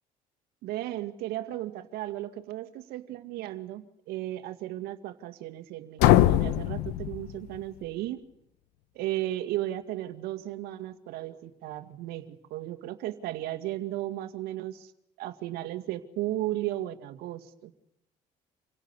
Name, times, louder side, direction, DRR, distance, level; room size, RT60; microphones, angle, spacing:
voice 1, 0.6-8.2 9.0-14.9 15.2-17.7, right 14 dB, 80° right, 8 dB, 2.1 m, -35 dB
sound 1, 6.0-7.9, left 14 dB, 85° left, 1.1 m, -23 dB
27.5 x 17.5 x 9.8 m, 0.82 s
supercardioid pair, 80°, 16 cm